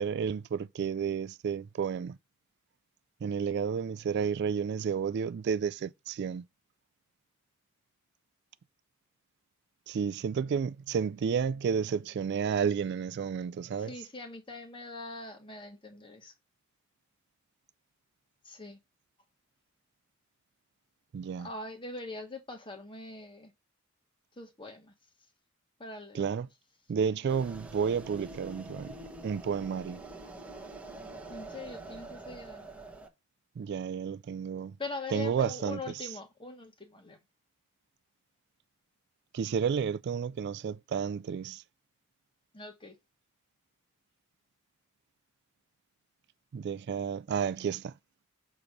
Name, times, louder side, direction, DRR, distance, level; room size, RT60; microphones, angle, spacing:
voice 1, 0.0-2.2 3.2-6.4 9.9-13.9 21.1-21.5 26.1-26.5 26.9-29.0 29.2-30.0 33.6-34.7 35.1-35.8 39.3-41.6 46.5-47.9, right 6 dB, 55° right, 0.3 m, -31 dB
voice 2, 13.8-16.3 18.4-18.8 21.4-23.5 24.4-24.9 25.8-26.3 31.0-32.7 34.8-37.2 42.5-42.9, left 3 dB, 25° left, 1.5 m, -42 dB
sound 1, 27.3-33.1, right 2 dB, 5° right, 1.1 m, -45 dB
6.9 x 3.1 x 5.2 m
head